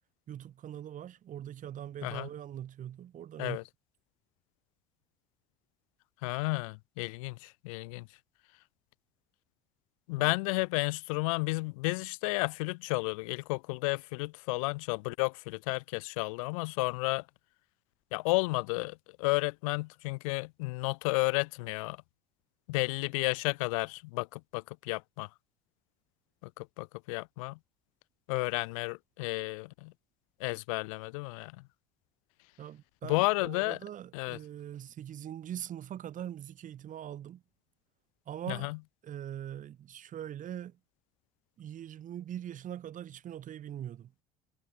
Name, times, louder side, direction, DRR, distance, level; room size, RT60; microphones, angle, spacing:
voice 1, 0.3-3.6 10.2-10.3 32.6-37.4 38.3-38.7 39.0-40.8 41.6-44.1, right 10 dB, 50° right, 2.3 m, -42 dB
voice 2, 6.2-8.1 10.1-17.2 18.1-22.0 22.7-25.3 26.4-27.6 28.3-29.9 30.4-31.5 33.1-33.8 34.1-34.4 38.5-38.8, left 26 dB, 90° left, 0.5 m, -32 dB
supercardioid pair, 85°, 17 cm